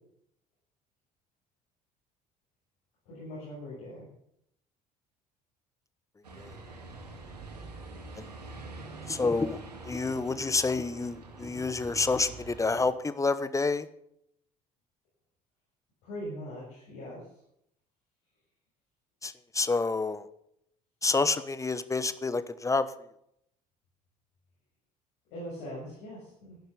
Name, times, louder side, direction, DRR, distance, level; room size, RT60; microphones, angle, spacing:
voice 1, 3.1-4.1 16.0-17.3 25.3-26.6, equal, 60° left, -6 dB, 7.0 m, -41 dB
sound 1, 6.2-12.9, right 3 dB, 80° right, 2.2 m, -45 dB
voice 2, 9.1-13.9 19.2-20.3 21.0-22.9, left 3 dB, 15° left, 15 dB, 1.1 m, -29 dB
13.5 x 11.5 x 6.9 m, 0.74 s
figure-of-eight pair, 55°, 20 cm